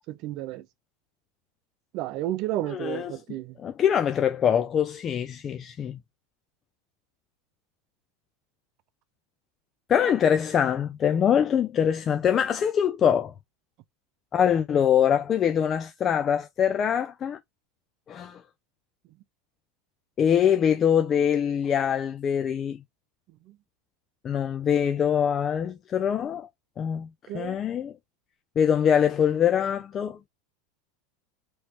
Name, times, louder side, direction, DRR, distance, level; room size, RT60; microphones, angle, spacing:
voice 1, 0.1-0.6 1.9-3.6 27.3-27.6, right 14 dB, 55° right, 0.5 m, -32 dB
voice 2, 2.7-3.1 3.6-6.0 9.9-13.3 14.3-17.4 18.1-18.4 20.2-22.8 24.2-26.5 26.8-27.1 27.3-27.9 28.6-30.2, left 8 dB, 35° left, 0.5 m, -23 dB
3.1 x 3.0 x 2.9 m
supercardioid pair, 110°, 0 cm